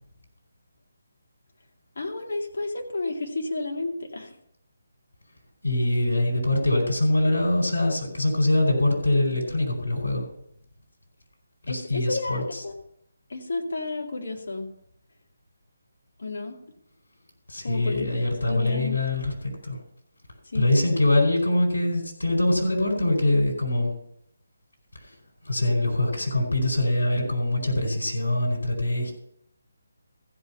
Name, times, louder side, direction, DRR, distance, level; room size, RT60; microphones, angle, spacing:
voice 1, 2.0-4.3 11.7-12.7 13.3-14.7 16.2-16.6 17.6-19.0 20.4-20.7, left 2 dB, 60° left, 1 dB, 2.3 m, -32 dB
voice 2, 5.6-10.3 11.6-12.6 17.5-19.8 20.5-23.9 24.9-25.1 25.4-29.1, left 1 dB, 85° left, 1 dB, 4.6 m, -23 dB
15.0 x 5.5 x 5.8 m, 0.72 s
figure-of-eight pair, 150°, 0 cm